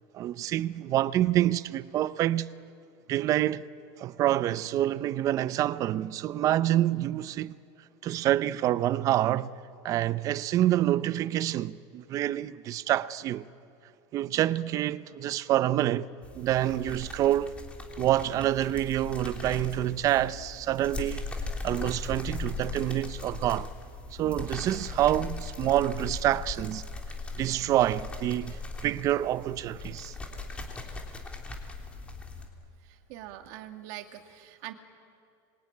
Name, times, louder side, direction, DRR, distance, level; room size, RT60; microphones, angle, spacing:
voice 1, 0.1-2.5 3.1-3.7 4.0-7.5 8.0-9.5 9.8-13.4 14.1-16.1 16.3-17.6 18.0-21.2 21.6-23.7 24.1-26.8 27.4-30.1, right 13 dB, 35° right, 0.7 m, -27 dB
sound 1, 16.2-32.5, left 3 dB, 10° left, 3.3 m, -39 dB
voice 2, 32.8-34.7, right 13 dB, 60° right, 2.2 m, -43 dB
26.0 x 23.0 x 9.7 m
supercardioid pair, 155°, 10 cm